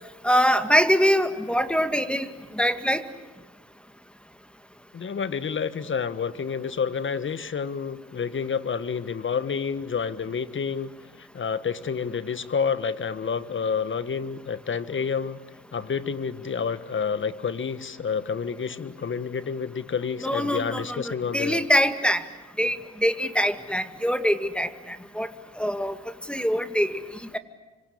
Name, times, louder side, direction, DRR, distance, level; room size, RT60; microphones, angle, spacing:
voice 1, 0.2-2.3 2.5-3.0 20.2-22.2 22.6-25.3 25.6-26.0 26.3-27.0 27.3-27.4, equal, 5° left, 10 dB, 2.0 m, -23 dB
voice 2, 4.9-10.9 11.2-15.4 15.7-21.6, left 6 dB, 40° left, 14 dB, 1.5 m, -29 dB
26.5 x 25.5 x 8.5 m, 1.2 s
cardioid pair, 90°, 30 cm